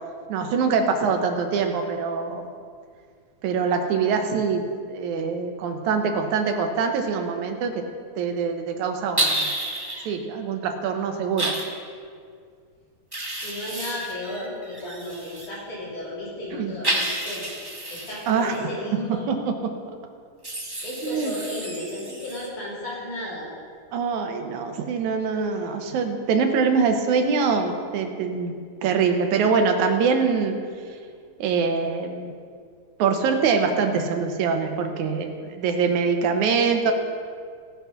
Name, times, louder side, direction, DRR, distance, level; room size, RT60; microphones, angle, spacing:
voice 1, 0.3-2.5 3.4-7.7 8.2-9.5 10.1-11.5 16.5-16.7 18.3-18.7 19.3-19.7 21.0-21.3 23.9-30.6 31.4-32.3 33.0-36.9, right 5 dB, 80° right, 5 dB, 2.3 m, -24 dB
sound 1, 9.2-10.1 11.4-11.6 13.1-15.5 16.8-18.6 20.4-22.5, right 1 dB, 20° right, 0.5 m, -30 dB
voice 2, 13.4-17.5 17.9-19.3 20.8-23.5, left 1 dB, 80° left, -7 dB, 4.8 m, -34 dB
17.5 x 5.9 x 5.8 m, 2.1 s
omnidirectional pair, 3.4 m